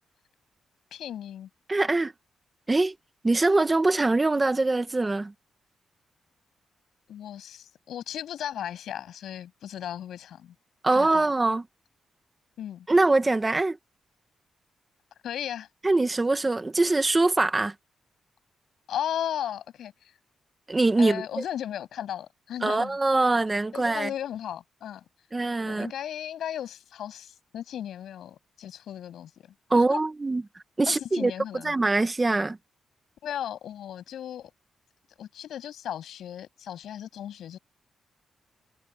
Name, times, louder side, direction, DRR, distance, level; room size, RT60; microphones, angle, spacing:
voice 1, 0.9-1.5 7.1-10.5 10.9-11.3 12.6-12.9 15.2-15.7 18.9-20.1 21.0-23.0 23.7-25.0 25.7-30.0 30.9-31.7 33.2-34.5 35.2-37.6, left 10 dB, 85° left, 7.8 m, -36 dB
voice 2, 1.7-2.1 2.7-2.9 3.2-5.3 10.8-11.6 12.9-13.8 15.8-17.7 20.7-21.2 22.6-24.1 25.3-25.9 29.7-30.4 30.8-31.3 31.6-32.6, right 2 dB, 20° right, 1.5 m, -23 dB
wide cardioid pair, 135°, 0 cm